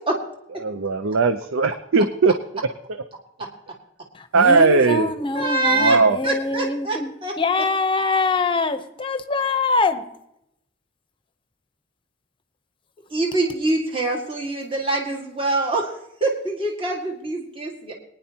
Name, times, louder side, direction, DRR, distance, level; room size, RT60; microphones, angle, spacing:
voice 1, 0.6-2.3 4.3-5.1 5.7-6.2, right 4 dB, 90° right, 0.6 m, -18 dB
voice 2, 4.3-7.1 7.4-10.0, left 3 dB, 25° left, 0.8 m, -23 dB
voice 3, 5.3-6.0 6.2-7.3 13.1-15.9 16.2-17.9, right 2 dB, 25° right, 1.9 m, -24 dB
21.0 x 10.0 x 2.9 m
head